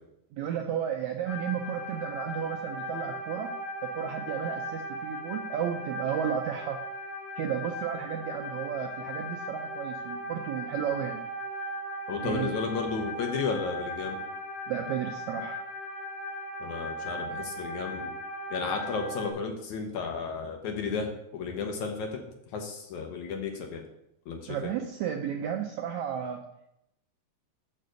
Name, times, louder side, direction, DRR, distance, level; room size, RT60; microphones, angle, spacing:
voice 1, 0.3-3.5 3.9-6.8 7.4-11.2 12.2-12.5 14.7-15.6 24.5-26.4, right 9 dB, 80° right, 3 dB, 1.7 m, -33 dB
sound 1, 1.3-19.3, equal, 20° left, 3.9 m, -38 dB
voice 2, 12.1-14.2 16.6-18.2 18.5-22.2 22.5-23.8 24.3-24.7, left 5 dB, 65° left, 3 dB, 2.1 m, -33 dB
6.7 x 6.6 x 6.4 m, 0.80 s
omnidirectional pair, 4.0 m